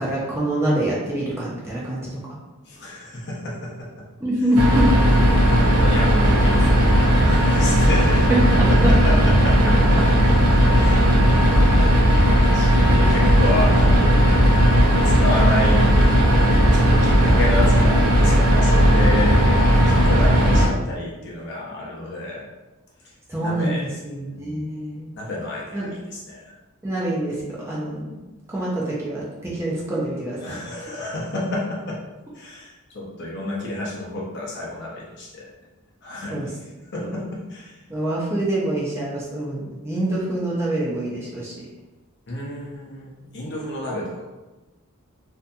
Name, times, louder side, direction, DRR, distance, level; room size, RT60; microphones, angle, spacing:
voice 1, 0.0-2.2 4.2-5.1 8.3-8.9 10.3-10.4 23.3-25.1 25.7-25.9 26.8-28.1 28.5-30.6 36.3-36.5 37.0-37.1 37.9-41.5, right 1 dB, 10° right, -6 dB, 0.5 m, -25 dB
voice 2, 2.7-3.9 5.3-9.7 10.8-11.0 11.3-11.5 12.5-14.1 15.0-16.0 16.6-19.4 19.9-22.4 23.0-23.1 23.4-23.8 24.2-24.7 25.2-26.5 30.4-32.0 32.3-35.5 36.0-36.5 36.9-37.8 42.3-44.2, left 2 dB, 50° left, -4 dB, 0.7 m, -30 dB
sound 1, 4.6-20.7, equal, 85° right, 0.5 m, -16 dB
2.7 x 2.6 x 2.2 m, 1.1 s
head